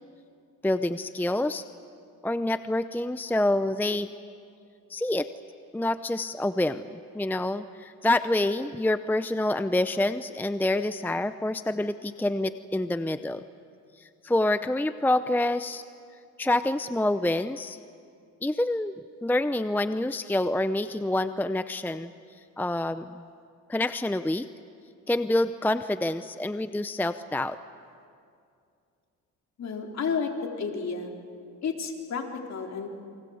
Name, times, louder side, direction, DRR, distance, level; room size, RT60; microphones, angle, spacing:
voice 1, 0.6-1.6 2.2-4.1 4.9-5.3 5.7-6.8 7.1-13.4 14.0-15.8 16.4-17.8 18.4-19.0 19.2-22.1 22.6-23.3 23.7-24.5 25.1-27.6, left 1 dB, 5° left, 11 dB, 0.6 m, -27 dB
voice 2, 29.6-31.1 31.6-32.9, left 5 dB, 50° left, 1 dB, 3.6 m, -31 dB
29.0 x 23.5 x 8.0 m, 2.4 s
cardioid pair, 90°, 34 cm